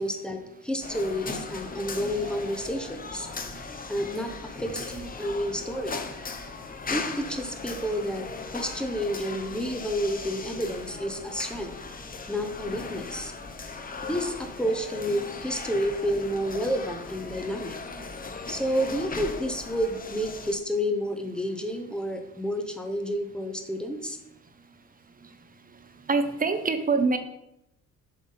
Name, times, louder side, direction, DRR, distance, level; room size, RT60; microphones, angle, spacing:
voice 1, 0.0-3.3 3.9-6.0 6.9-11.7 12.3-13.3 14.0-17.8 18.5-24.2, equal, 5° left, 5 dB, 1.0 m, -30 dB
sound 1, 0.8-20.6, left 4 dB, 30° left, 0.8 m, -38 dB
voice 2, 26.1-27.2, right 4 dB, 30° right, 8 dB, 0.9 m, -25 dB
7.6 x 3.6 x 5.6 m, 0.82 s
cardioid pair, 90°, 30 cm